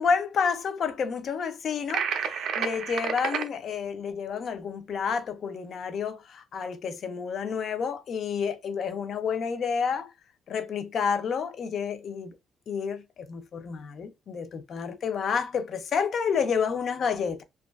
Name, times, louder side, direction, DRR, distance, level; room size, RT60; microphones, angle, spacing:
voice 1, 0.0-10.1 10.5-12.3 12.7-17.4, left 6 dB, 45° left, 0.3 m, -29 dB
sound 1, 1.9-3.5, right 7 dB, 60° right, 0.3 m, -30 dB
2.5 x 2.2 x 2.2 m
cardioid pair, 160°, 0 cm